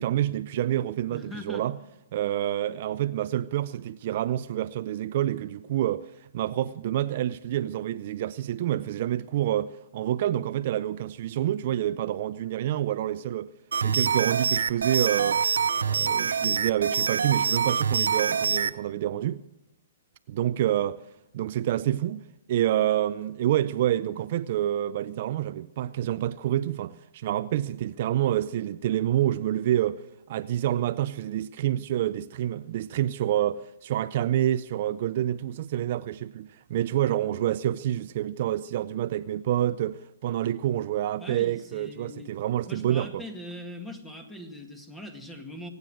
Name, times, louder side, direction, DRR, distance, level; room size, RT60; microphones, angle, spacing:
voice 1, 0.0-1.8 2.1-13.5 13.8-15.4 15.8-19.4 20.3-21.0 21.3-22.2 22.5-30.0 30.3-43.2, right 12 dB, 50° right, 0.5 m, -28 dB
voice 2, 1.1-1.6 41.2-42.3 42.7-45.7, left 1 dB, 5° left, 2.0 m, -41 dB
sound 1, 13.7-18.7, right 6 dB, 85° right, 0.7 m, -25 dB
24.5 x 9.5 x 6.3 m
hypercardioid pair, 140°, 0 cm